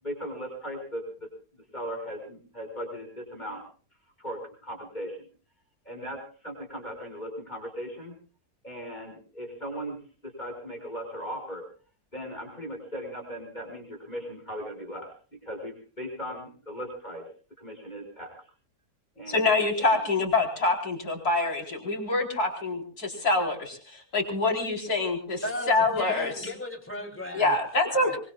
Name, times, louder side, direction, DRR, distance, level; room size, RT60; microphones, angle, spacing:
voice 1, 0.0-1.0 1.5-3.6 4.2-5.2 5.8-8.2 8.6-10.0 10.2-11.6 12.1-15.1 15.4-17.2 17.6-18.3 19.2-19.5 19.8-20.0, equal, 25° left, 2 dB, 6.1 m, -38 dB
voice 2, 19.3-26.3 27.3-28.2, left 3 dB, 65° left, 1 dB, 4.7 m, -26 dB
voice 3, 25.4-27.6 27.9-28.2, left 1 dB, 5° left, 3 dB, 3.2 m, -35 dB
24.5 x 23.5 x 2.4 m, 0.40 s
omnidirectional pair, 1.8 m